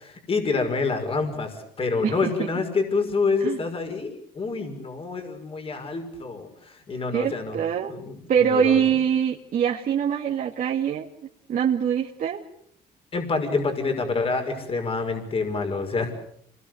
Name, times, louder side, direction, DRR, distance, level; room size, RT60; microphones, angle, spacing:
voice 1, 0.0-7.6 7.9-8.8 13.1-16.1, left 4 dB, 35° left, 5 dB, 5.8 m, -27 dB
voice 2, 7.1-7.9 8.3-11.1 11.5-12.4, right 8 dB, 55° right, -1 dB, 2.2 m, -23 dB
27.5 x 21.0 x 7.9 m, 0.68 s
cardioid pair, 110°, 17 cm